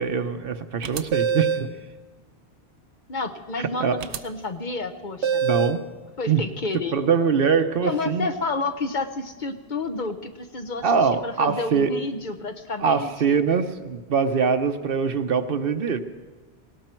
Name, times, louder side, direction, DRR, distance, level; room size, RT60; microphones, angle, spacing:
voice 1, 0.0-1.7 3.8-4.0 5.4-5.8 6.3-6.4 6.9-8.3 10.8-11.9 12.8-16.0, right 6 dB, 60° right, 9 dB, 0.9 m, -23 dB
sound 1, 0.8-1.7 4.0-4.2 5.2-5.8, right 6 dB, 85° right, 1.0 m, -24 dB
voice 2, 3.1-5.4 6.2-7.0 7.8-10.9 11.2-13.4, left 3 dB, 50° left, 7 dB, 0.9 m, -30 dB
18.0 x 17.5 x 4.5 m, 1.3 s
omnidirectional pair, 1.1 m